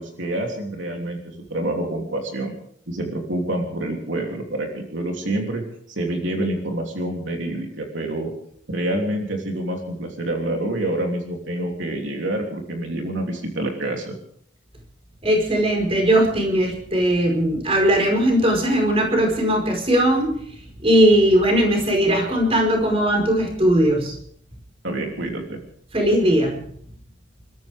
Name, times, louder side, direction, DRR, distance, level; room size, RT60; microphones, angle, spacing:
voice 1, 0.0-2.5 2.9-8.3 8.7-14.2 24.8-25.6, right 1 dB, 80° right, 1 dB, 3.1 m, -27 dB
voice 2, 15.2-20.4 20.8-24.2 25.9-26.6, right 1 dB, 30° right, 1 dB, 4.9 m, -19 dB
28.5 x 13.5 x 3.6 m, 0.64 s
head